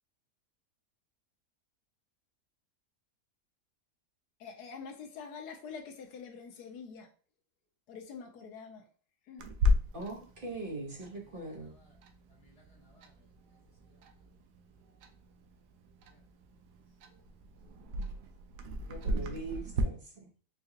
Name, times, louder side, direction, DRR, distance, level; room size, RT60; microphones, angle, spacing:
voice 1, 4.4-7.1 7.9-8.8 9.3-9.5, left 5 dB, 75° left, 1.2 m, -45 dB
Clock, 9.4-19.8, left 1 dB, 75° right, 1.1 m, -36 dB
voice 2, 9.9-11.7 18.9-20.0, right 2 dB, 40° right, 1.0 m, -41 dB
voice 3, 11.2-12.0 12.3-13.3 13.8-14.0 16.1-16.2 18.9-19.2, left 1 dB, 45° left, 1.5 m, -65 dB
4.7 x 2.3 x 2.8 m
omnidirectional pair, 1.8 m